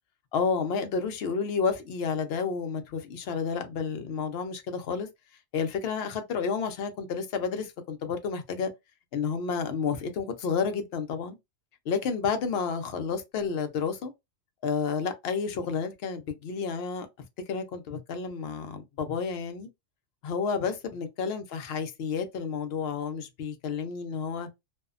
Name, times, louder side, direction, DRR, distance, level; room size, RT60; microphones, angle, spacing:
voice 1, 0.3-5.1 5.5-8.7 9.1-11.4 11.9-14.1 14.6-17.1 17.5-19.7 20.2-24.5, left 5 dB, 65° left, 0.7 m, -30 dB
2.6 x 2.1 x 2.4 m
omnidirectional pair, 1.3 m